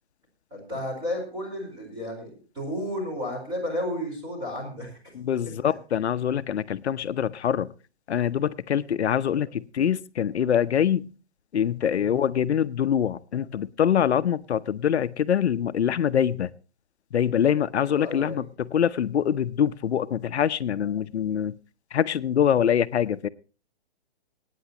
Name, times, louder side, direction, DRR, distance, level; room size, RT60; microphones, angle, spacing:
voice 1, 0.5-5.0 9.2-9.4 17.8-18.4, left 1 dB, 15° right, 0 dB, 4.6 m, -33 dB
voice 2, 5.1-7.7 8.1-11.1 11.5-16.5 17.1-21.6 21.9-23.3, left 9 dB, 85° left, 13 dB, 0.8 m, -24 dB
25.0 x 9.4 x 2.9 m, 0.36 s
hypercardioid pair, 170°, 32 cm